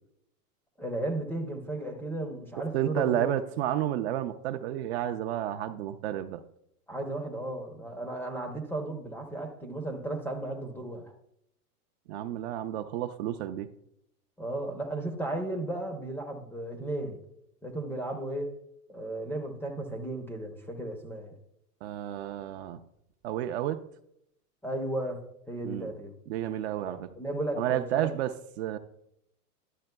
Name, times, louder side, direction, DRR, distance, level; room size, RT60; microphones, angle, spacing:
voice 1, 0.8-3.3 6.9-11.1 14.4-17.2 17.6-18.5 18.9-21.3 24.6-26.1 26.8-28.1, right 1 dB, 5° left, 0.5 m, -35 dB
voice 2, 2.7-6.4 12.1-13.7 21.8-22.8 23.2-23.8 25.6-25.9 26.3-27.1 27.6-28.8, right 12 dB, 45° right, 0.5 m, -31 dB
12.0 x 8.5 x 2.2 m
hypercardioid pair, 130°, 47 cm